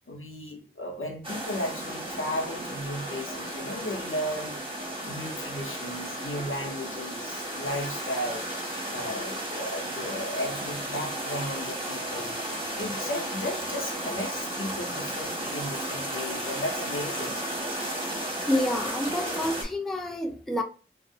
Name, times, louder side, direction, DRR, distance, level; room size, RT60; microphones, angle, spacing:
voice 1, 0.0-4.6 5.0-8.5 8.9-17.4, left 1 dB, 75° left, 0.7 m, -35 dB
sound 1, 1.2-19.6, right 1 dB, 25° right, 0.8 m, -34 dB
voice 2, 18.5-20.6, left 1 dB, ahead, 0.3 m, -28 dB
2.5 x 2.0 x 2.6 m
wide cardioid pair, 55°, 21 cm